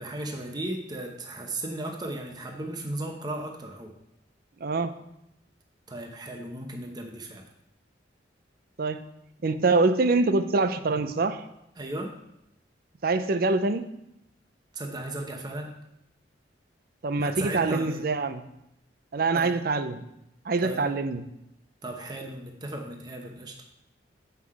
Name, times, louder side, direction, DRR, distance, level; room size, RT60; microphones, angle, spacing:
voice 1, 0.0-3.9 5.9-7.4 11.8-12.1 14.7-15.8 17.2-18.0 19.3-19.5 20.6-20.8 21.8-23.6, right 1 dB, 20° right, 2 dB, 0.8 m, -35 dB
voice 2, 4.6-4.9 8.8-9.0 9.4-11.4 13.0-13.9 17.0-18.4 19.1-20.0 20.5-21.3, right 3 dB, 55° right, 11 dB, 0.5 m, -25 dB
8.0 x 5.8 x 4.7 m, 0.82 s
head